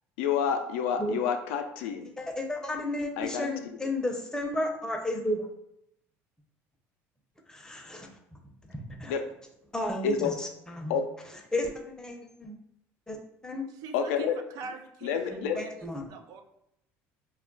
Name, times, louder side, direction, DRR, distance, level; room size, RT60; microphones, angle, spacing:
voice 1, 0.2-2.1 3.2-3.5 9.1-9.2 10.0-10.3 10.9-11.0 13.9-14.4 15.0-15.6, left 7 dB, 85° left, 6 dB, 0.4 m, -28 dB
voice 2, 2.2-5.5 7.5-8.1 8.7-9.1 9.7-11.0 11.5-12.6 13.1-13.6 15.3-16.0, left 1 dB, 10° left, 2 dB, 0.6 m, -33 dB
voice 3, 13.8-16.4, right 5 dB, 65° right, 6 dB, 0.4 m, -44 dB
2.3 x 2.1 x 3.8 m, 0.80 s
supercardioid pair, 85°, 7 cm